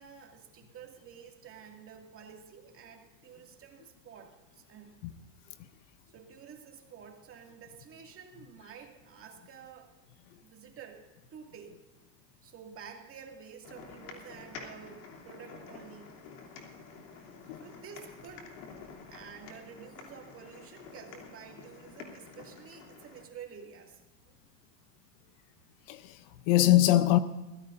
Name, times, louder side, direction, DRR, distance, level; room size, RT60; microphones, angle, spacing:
voice 1, 0.0-5.0 6.1-9.9 10.4-11.0 11.3-11.8 12.4-16.2 17.6-18.5 19.0-24.0, right 7 dB, 25° right, 2.2 m, -50 dB
sound 1, 13.6-23.2, left 5 dB, 75° left, 3.2 m, -49 dB
voice 2, 25.9-27.2, left 14 dB, 55° left, 0.8 m, -23 dB
22.5 x 16.0 x 2.6 m
supercardioid pair, 135°, 48 cm